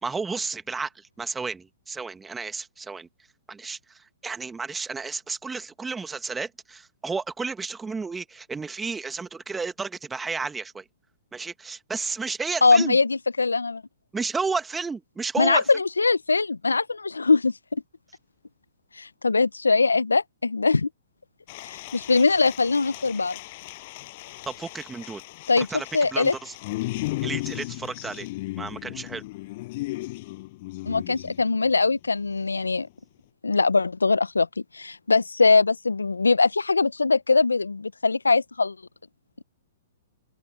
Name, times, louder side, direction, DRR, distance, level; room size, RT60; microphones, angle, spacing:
voice 1, 0.0-3.1 3.5-10.8 11.3-13.0 14.1-15.7 24.5-25.2 25.6-25.9 26.1-26.5 27.2-28.3 28.6-29.2, right 4 dB, 10° right, 1.9 m, -32 dB
voice 2, 12.6-13.8 15.4-17.8 19.0-20.9 21.6-23.4 25.5-25.7 25.9-26.3 30.8-32.9 33.4-34.5 34.7-38.7, left 4 dB, 85° left, 0.9 m, -22 dB
sound 1, 21.5-31.8 32.3-32.6, left 20 dB, 45° left, 6.7 m, -36 dB
figure-of-eight pair, 115°, 0 cm